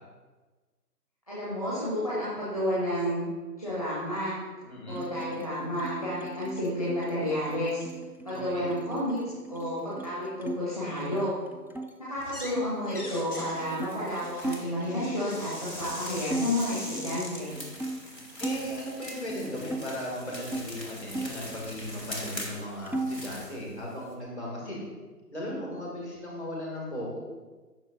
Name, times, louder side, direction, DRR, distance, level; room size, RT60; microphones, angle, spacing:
voice 1, 1.3-3.2 3.6-4.4 4.9-7.9 8.2-9.2 9.5-11.3 12.1-17.5, left 1 dB, 20° left, -10 dB, 1.2 m, -31 dB
voice 2, 4.6-5.0 8.3-8.7 18.4-24.9 25.3-27.2, equal, 40° left, -3 dB, 2.3 m, -37 dB
sound 1, 4.9-10.6 10.9-11.9 12.5-15.4 15.8-16.0 16.2-18.7 19.1-20.7 21.1-22.2 22.4-23.3, right 2 dB, 5° right, 0.3 m, -38 dB
sound 2, 12.2-12.6 12.9-17.4, left 1 dB, 65° left, 1.4 m, -42 dB
sound 3, 13.6-14.7 15.3-24.1, equal, 80° left, 2.0 m, -43 dB
10.5 x 6.3 x 2.6 m, 1.3 s
figure-of-eight pair, 160°, 49 cm